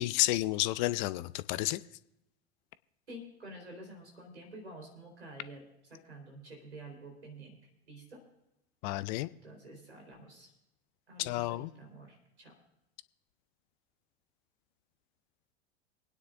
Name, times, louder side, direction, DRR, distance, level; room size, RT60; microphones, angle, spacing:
voice 1, 0.0-1.8 8.8-9.3 11.2-11.7, left 17 dB, 45° left, 0.6 m, -31 dB
voice 2, 3.1-7.6 7.9-8.2 9.4-10.5 11.1-12.5, right 1 dB, 80° right, 4.1 m, -49 dB
27.5 x 9.6 x 2.5 m
figure-of-eight pair, 80°, 33 cm